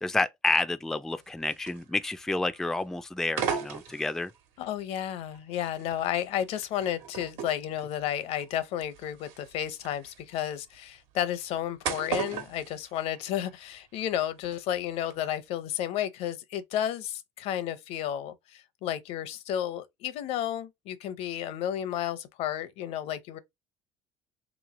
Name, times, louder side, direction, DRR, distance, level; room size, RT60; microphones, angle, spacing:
voice 1, 0.0-4.3, left 2 dB, 5° left, 0.3 m, -29 dB
sound 1, 1.2-2.2 2.5-2.8 3.3-4.4 5.0-13.7 13.9-14.6 14.9-15.1, right 7 dB, 90° right, 1.4 m, -38 dB
voice 2, 4.6-23.4, left 11 dB, 70° left, 0.7 m, -32 dB
3.5 x 3.0 x 3.6 m
cardioid pair, 115°, 11 cm